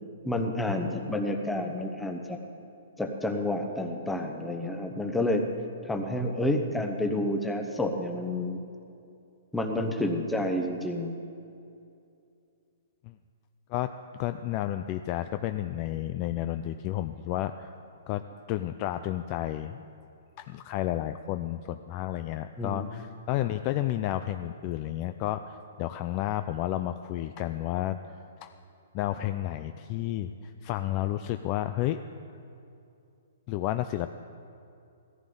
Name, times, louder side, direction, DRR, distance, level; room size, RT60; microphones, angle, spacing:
voice 1, 0.2-2.4 3.0-5.4 5.8-8.6 9.5-11.2 22.6-22.9, left 1 dB, 5° left, 3 dB, 0.9 m, -29 dB
voice 2, 14.2-17.7 18.1-18.2 18.5-19.8 20.4-28.0 28.4-28.5 28.9-32.0 33.5-34.1, left 13 dB, 30° left, 9 dB, 0.3 m, -31 dB
16.0 x 14.0 x 3.9 m, 2.6 s
hypercardioid pair, 160°, 0 cm